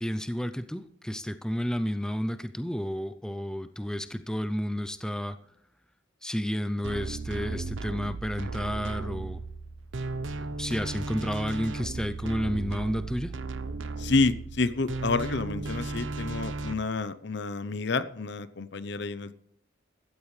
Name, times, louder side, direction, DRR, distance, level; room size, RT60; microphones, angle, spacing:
voice 1, 0.0-5.4 6.2-9.4 10.6-13.3, equal, 5° left, 10 dB, 0.5 m, -31 dB
sound 1, 6.8-16.7, right 3 dB, 75° right, 0.8 m, -35 dB
voice 2, 14.0-19.3, left 3 dB, 60° left, 14 dB, 0.7 m, -29 dB
15.5 x 13.5 x 3.3 m, 0.73 s
head